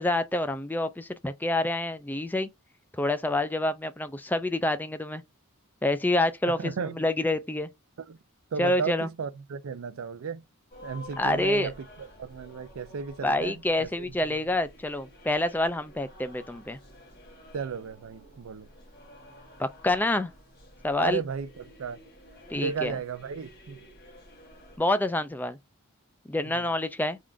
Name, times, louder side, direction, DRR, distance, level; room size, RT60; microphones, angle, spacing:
voice 1, 0.0-2.5 3.0-5.2 5.8-7.7 8.6-9.1 11.2-11.7 13.2-16.8 19.6-20.3 20.8-21.2 22.5-23.0 24.8-25.6 26.3-27.2, left 1 dB, 10° left, 0.3 m, -27 dB
voice 2, 6.6-7.0 8.1-8.2 8.5-10.4 10.8-14.4 17.5-18.7 21.0-22.0 22.6-23.8 26.4-26.7, right 6 dB, 70° right, 0.4 m, -34 dB
sound 1, 10.7-24.8, left 1 dB, 45° left, 1.7 m, -51 dB
3.6 x 2.5 x 3.3 m
head